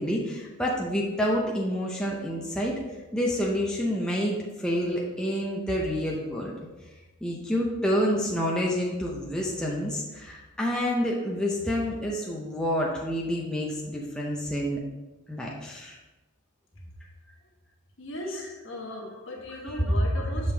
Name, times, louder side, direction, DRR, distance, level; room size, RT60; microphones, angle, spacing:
voice 1, 0.0-2.7 3.1-6.5 7.2-14.8 15.3-16.0 18.9-19.0 19.5-20.0, equal, 5° left, -3 dB, 0.6 m, -28 dB
voice 2, 18.0-20.5, left 1 dB, 55° left, -1 dB, 1.3 m, -37 dB
7.0 x 5.1 x 3.4 m, 1.1 s
head